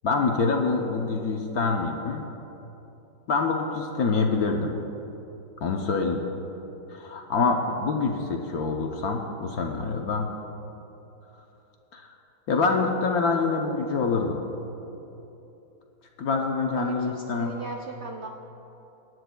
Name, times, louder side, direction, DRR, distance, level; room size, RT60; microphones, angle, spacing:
voice 1, 0.0-2.2 3.3-4.7 5.6-6.3 6.9-10.3 11.9-12.1 12.5-14.4 16.2-17.6, left 4 dB, 60° left, 2 dB, 1.0 m, -26 dB
voice 2, 16.7-18.3, right 3 dB, 75° right, 1 dB, 0.6 m, -38 dB
23.5 x 9.7 x 2.2 m, 3.0 s
omnidirectional pair, 2.1 m